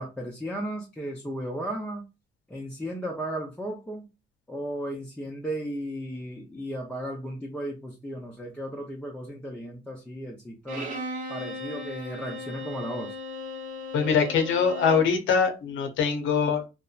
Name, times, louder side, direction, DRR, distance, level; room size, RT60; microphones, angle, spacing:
voice 1, 0.0-2.0 2.5-4.1 4.5-10.9 11.3-13.2, right 1 dB, 5° left, -2 dB, 0.6 m, -35 dB
Bowed string instrument, 10.7-15.2, left 2 dB, 40° right, 0.9 m, -37 dB
voice 2, 13.9-16.7, left 6 dB, 75° left, 5 dB, 0.7 m, -23 dB
2.8 x 2.1 x 2.4 m, 0.28 s
cardioid pair, 90°, 20 cm